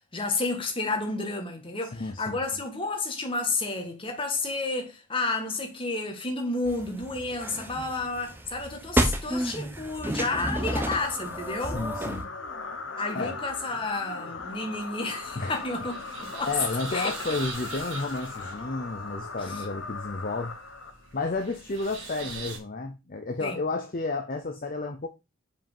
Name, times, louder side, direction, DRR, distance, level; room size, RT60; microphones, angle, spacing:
voice 1, 0.1-11.8 13.0-16.5 16.9-17.2 19.4-19.7 23.4-23.6, left 3 dB, 25° left, 1.5 m, -31 dB
voice 2, 1.9-2.3 11.6-12.3 13.1-13.3 15.4-15.7 16.5-20.5 21.1-25.1, left 3 dB, 40° left, 0.6 m, -32 dB
sound 1, 6.6-12.2, right 1 dB, 10° right, 0.8 m, -31 dB
sound 2, 10.5-21.3, left 4 dB, 60° left, 1.0 m, -38 dB
sound 3, 15.2-22.6, right 4 dB, 65° right, 2.6 m, -43 dB
5.2 x 5.1 x 5.3 m
head